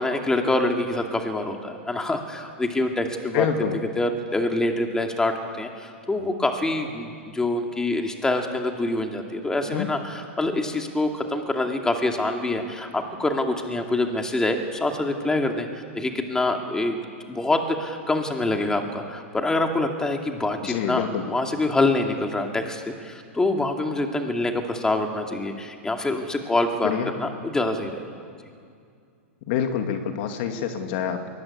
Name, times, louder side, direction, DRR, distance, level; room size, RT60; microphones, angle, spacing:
voice 1, 0.0-3.5 4.0-15.7 15.9-17.0 17.3-28.1, left 2 dB, 10° left, 4 dB, 2.3 m, -25 dB
voice 2, 3.3-3.8 9.7-9.9 20.6-21.2 26.8-27.1 29.5-31.3, left 8 dB, 55° left, 6 dB, 2.4 m, -26 dB
23.0 x 19.0 x 8.5 m, 2.3 s
hypercardioid pair, 115°, 7 cm